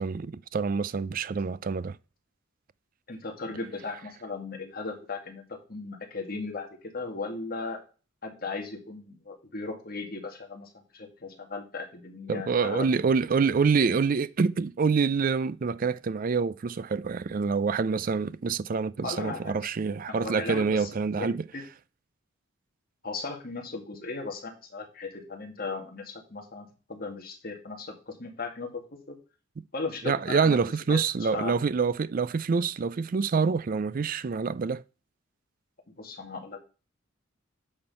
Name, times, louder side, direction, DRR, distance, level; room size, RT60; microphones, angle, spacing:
voice 1, 0.0-2.0 12.3-21.4 30.0-34.8, right 5 dB, 45° right, 0.4 m, -26 dB
voice 2, 3.1-7.8 8.2-12.9 19.0-19.5 20.1-20.9 21.2-21.6 23.0-29.2 29.7-30.6 30.9-31.5 36.0-36.6, left 3 dB, 45° left, 2.2 m, -37 dB
8.6 x 4.5 x 5.4 m
head